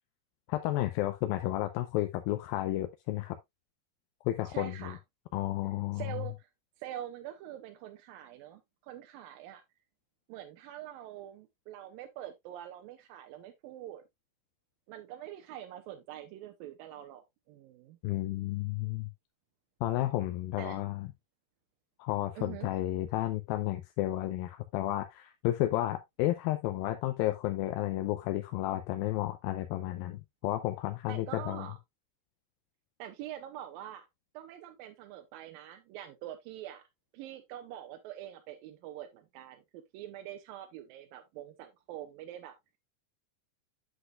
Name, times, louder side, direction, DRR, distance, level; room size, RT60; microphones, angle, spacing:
voice 1, 0.5-3.4 4.3-5.0 5.3-6.1 18.0-19.1 19.8-21.1 22.0-31.7, left 15 dB, 85° left, 2.4 m, -32 dB
voice 2, 4.5-5.0 5.9-6.5 6.8-9.6 10.3-14.0 14.9-18.0 20.6-20.8 22.4-22.7 31.1-31.8 33.0-34.1 34.3-36.8 37.1-42.8, right 12 dB, 85° right, 2.4 m, -45 dB
8.1 x 8.0 x 2.4 m
omnidirectional pair, 4.1 m